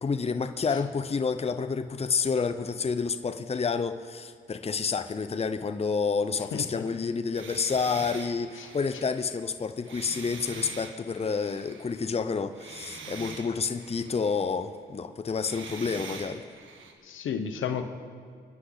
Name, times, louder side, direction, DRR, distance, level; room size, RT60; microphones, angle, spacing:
voice 1, 0.0-16.4, left 5 dB, 30° left, 10 dB, 0.7 m, -29 dB
voice 2, 6.5-6.8 8.6-8.7 17.0-17.8, left 7 dB, 80° left, 7 dB, 1.1 m, -32 dB
sound 1, 6.8-12.3 12.5-14.6 15.4-16.9, right 5 dB, 75° right, 1.5 m, -44 dB
26.5 x 9.9 x 4.0 m, 2.1 s
cardioid pair, 60°, 20 cm